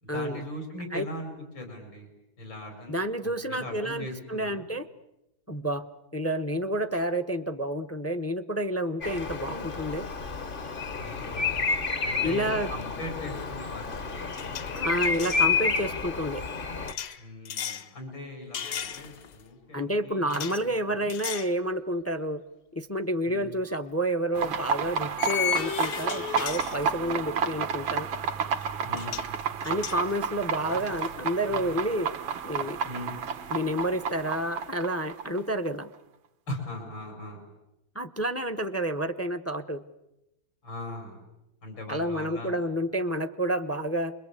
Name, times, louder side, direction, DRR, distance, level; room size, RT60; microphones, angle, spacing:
voice 1, 0.0-2.1 2.4-3.0 3.2-4.7 11.0-14.4 17.2-21.1 23.2-23.5 28.8-29.2 32.8-33.2 36.5-37.4 40.6-41.2 41.6-42.6, left 1 dB, 85° left, 3 dB, 6.0 m, -40 dB
voice 2, 2.9-4.8 5.5-5.9 6.1-10.1 12.2-12.7 14.7-16.4 19.7-22.4 22.7-28.1 29.6-32.1 32.4-32.8 33.5-35.9 37.9-39.8 41.9-44.1, right 1 dB, 15° left, 10 dB, 0.5 m, -29 dB
Bird vocalization bird call bird song, 9.0-16.9, left 5 dB, 35° left, 0.9 m, -30 dB
sound 1, 13.4-13.6 13.8-15.5 16.9-17.9 18.5-19.4 20.3-20.6 21.1-21.6 22.0-22.2 23.7-23.8 25.2-27.3 28.6-28.7 28.9-29.3 29.6-31.1, left 9 dB, 70° left, 1.8 m, -35 dB
sound 2, 24.4-35.8, right 7 dB, 90° right, 2.0 m, -31 dB
29.0 x 22.5 x 8.3 m, 0.92 s
omnidirectional pair, 2.1 m